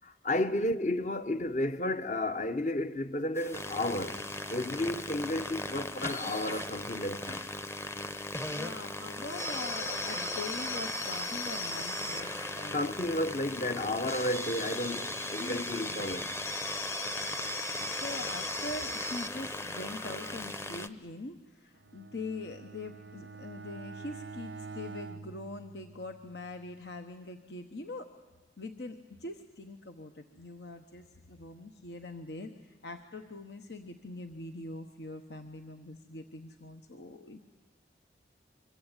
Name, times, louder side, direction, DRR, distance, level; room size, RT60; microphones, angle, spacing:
voice 1, 0.0-7.4 12.7-16.4, left 1 dB, 40° left, 0.9 m, -32 dB
sound 1, 3.4-20.9, left 1 dB, 15° left, 0.8 m, -37 dB
voice 2, 8.5-12.9 15.4-16.0 17.8-28.1 28.6-37.5, left 2 dB, 75° left, 1.1 m, -43 dB
Bowed string instrument, 21.8-26.4, right 4 dB, 90° right, 0.8 m, -46 dB
25.0 x 23.5 x 9.0 m
head